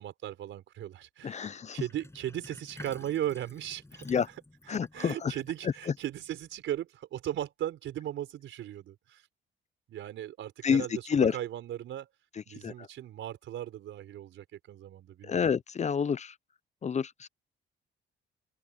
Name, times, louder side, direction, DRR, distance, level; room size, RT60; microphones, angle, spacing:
voice 1, 0.0-4.2 4.7-9.2 9.9-12.1 12.5-15.5, right 12 dB, 80° right, 4.9 m, -37 dB
voice 2, 1.2-1.8 4.1-4.3 4.7-5.3 10.6-11.3 12.6-12.9 15.2-16.3 16.8-17.3, left 6 dB, 35° left, 0.6 m, -28 dB
Sink (filling or washing), 1.9-6.6, left 2 dB, 15° left, 7.1 m, -51 dB
open air
cardioid pair, 90°, 20 cm